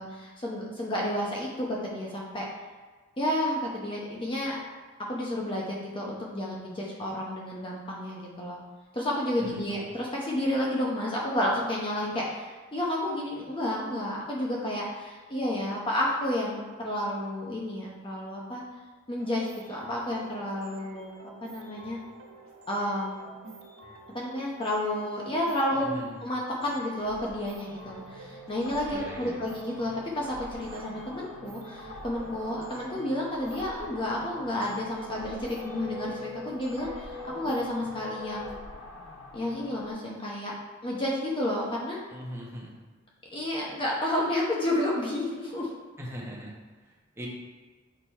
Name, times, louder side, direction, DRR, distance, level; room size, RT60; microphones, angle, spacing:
voice 1, 0.0-2.5 3.2-4.6 5.1-8.6 8.9-18.6 19.1-21.1 21.5-22.0 22.7-23.4 24.1-38.6 39.3-40.5 40.8-42.0 43.3-45.7, left 1 dB, 25° left, -4 dB, 0.8 m, -31 dB
voice 2, 9.4-9.9 25.7-26.2 28.9-29.5 42.1-42.8 46.0-47.3, equal, 10° right, -4 dB, 1.2 m, -41 dB
sound 1, 19.2-38.6, equal, 75° right, 1.3 m, -47 dB
sound 2, 25.4-39.9, left 2 dB, 60° left, 0.8 m, -47 dB
6.3 x 3.9 x 4.4 m, 1.3 s
head